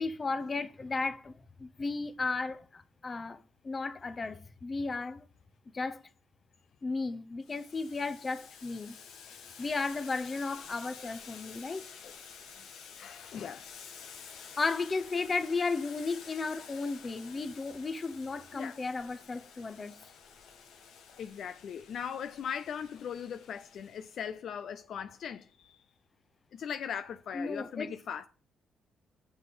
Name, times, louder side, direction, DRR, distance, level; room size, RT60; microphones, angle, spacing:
voice 1, 0.0-3.4 3.6-5.2 5.7-6.0 6.8-8.9 9.6-11.8 14.6-20.0 27.3-27.9, left 3 dB, 30° left, 0.9 m, -34 dB
Boiling, 7.4-24.2, left 6 dB, 85° left, 1.6 m, -51 dB
voice 2, 13.0-13.7 18.5-18.8 21.2-25.8 26.5-28.3, left 8 dB, 65° left, 0.5 m, -39 dB
7.2 x 6.7 x 5.4 m
cardioid pair, 90°, 0 cm